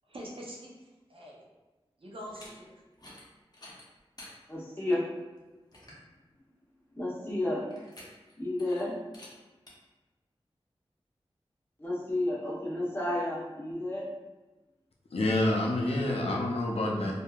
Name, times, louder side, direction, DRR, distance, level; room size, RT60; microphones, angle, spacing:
voice 1, 0.1-1.4 2.0-2.7, equal, 60° right, -3 dB, 0.6 m, -44 dB
sound 1, 2.2-2.5 2.9-3.2 3.5-4.3 4.9-5.0 5.4-5.5 5.7-6.0 7.7-8.3 8.6-8.8 9.1-9.3 9.7-9.8, left 1 dB, 40° left, 0.8 m, -50 dB
voice 2, 4.5-5.1 6.9-7.6 8.4-9.0 11.8-14.1, left 1 dB, 20° left, -7 dB, 1.0 m, -31 dB
voice 3, 15.1-17.2, left 1 dB, 75° left, -1 dB, 0.4 m, -28 dB
2.7 x 2.5 x 2.3 m, 1.2 s
cardioid pair, 45°, 10 cm